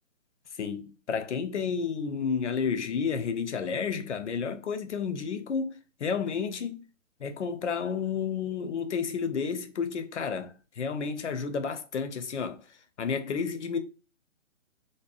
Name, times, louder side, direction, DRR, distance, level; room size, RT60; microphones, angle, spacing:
voice 1, 0.6-5.7 6.0-6.8 7.2-12.6 13.0-13.8, left 6 dB, 60° left, 0.5 m, -31 dB
2.8 x 2.0 x 2.4 m
hypercardioid pair, 180°, 39 cm